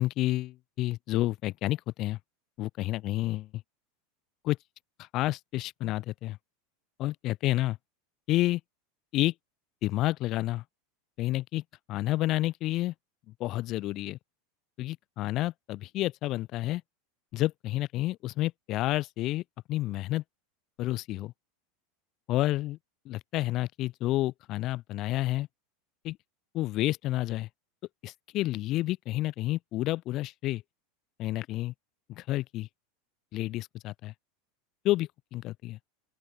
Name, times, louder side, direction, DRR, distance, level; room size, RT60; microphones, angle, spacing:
voice 1, 0.0-2.2 2.6-3.5 4.4-4.6 5.0-6.4 7.0-7.8 8.3-8.6 9.1-9.3 9.8-10.6 11.2-11.6 11.9-12.9 13.4-14.2 14.8-16.8 17.3-19.4 19.7-20.2 20.8-21.3 22.3-22.8 23.0-25.5 26.0-26.2 26.5-27.5 28.0-30.6 31.2-31.7 32.1-32.7 33.3-34.1 34.8-35.8, left 16 dB, 35° left, 2.5 m, -30 dB
open air
supercardioid pair, 155°, 0 cm